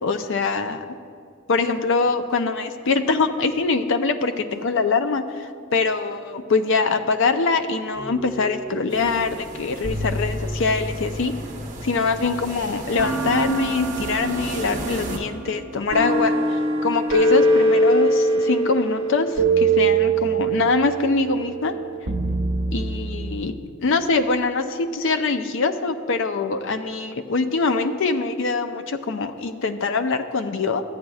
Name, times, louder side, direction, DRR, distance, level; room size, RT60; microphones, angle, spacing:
voice 1, 0.0-0.8 1.5-11.3 11.8-16.4 16.8-21.7 22.7-30.8, left 4 dB, 65° left, 7 dB, 0.5 m, -23 dB
sound 1, 7.9-9.1 9.8-12.4 13.0-23.4, right 2 dB, 65° right, 0.9 m, -24 dB
sound 2, 8.9-15.2, right 2 dB, 40° right, 0.9 m, -35 dB
14.0 x 8.6 x 2.4 m, 2.3 s
head